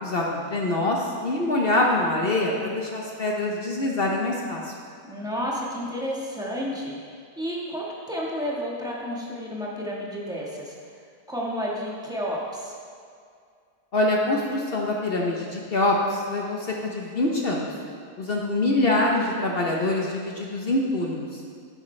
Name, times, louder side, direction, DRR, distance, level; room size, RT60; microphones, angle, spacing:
voice 1, 0.0-4.7 13.9-17.7 18.2-21.4, left 2 dB, 45° left, -1 dB, 0.8 m, -25 dB
voice 2, 5.0-7.0 7.4-10.7 11.3-12.7, equal, 5° right, -5 dB, 1.2 m, -31 dB
10.0 x 8.8 x 3.2 m, 2.2 s
omnidirectional pair, 1.7 m